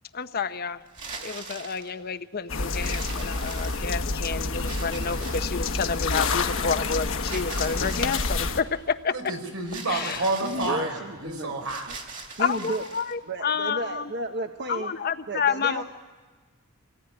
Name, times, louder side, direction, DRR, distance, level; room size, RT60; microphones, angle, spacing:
voice 1, 0.1-0.8 1.2-9.1 9.9-10.2 10.6-10.8 12.4-14.1 14.7-15.8, left 6 dB, 45° left, 0.7 m, -29 dB
sound 1, 0.9-1.9 2.8-4.1 4.7-5.6 7.3-8.4 9.7-10.8 11.6-13.1, right 4 dB, 40° right, 2.6 m, -41 dB
sound 2, 2.5-8.6, left 3 dB, 65° left, 1.2 m, -28 dB
voice 2, 9.1-11.9, right 2 dB, 85° right, 4.4 m, -30 dB
voice 3, 10.4-11.5 12.4-12.8 13.2-14.9 15.3-15.8, right 2 dB, 55° right, 1.1 m, -32 dB
24.5 x 18.0 x 9.7 m
head